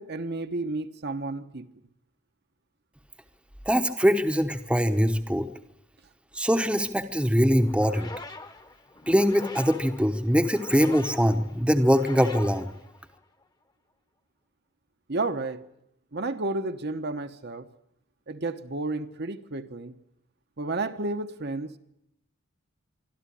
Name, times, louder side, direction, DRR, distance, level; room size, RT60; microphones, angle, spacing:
voice 1, 0.0-1.7 15.1-15.6 16.1-17.7 18.3-19.9 20.6-21.8, right 2 dB, 50° right, 1.1 m, -31 dB
voice 2, 3.7-5.5 6.3-8.1 9.1-12.7, equal, 5° right, 1.0 m, -23 dB
sound 1, 7.6-13.4, left 2 dB, 20° left, 1.2 m, -43 dB
25.0 x 13.0 x 10.0 m
head